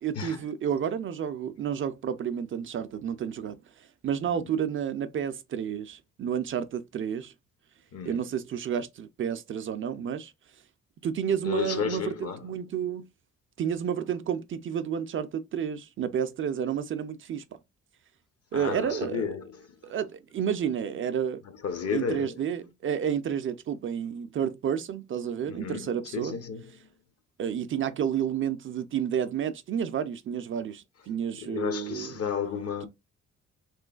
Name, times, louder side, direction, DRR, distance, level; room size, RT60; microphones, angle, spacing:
voice 1, 0.0-3.6 4.0-7.3 8.1-10.3 11.0-13.0 13.6-17.6 18.5-19.3 19.8-21.4 21.9-26.4 27.4-32.2, right 8 dB, 45° right, 0.4 m, -30 dB
voice 2, 7.9-8.2 11.4-12.4 18.5-19.6 21.6-22.4 25.5-26.9 31.4-32.9, left 7 dB, 55° left, 0.7 m, -33 dB
3.1 x 3.0 x 2.3 m
cardioid pair, 90°, 30 cm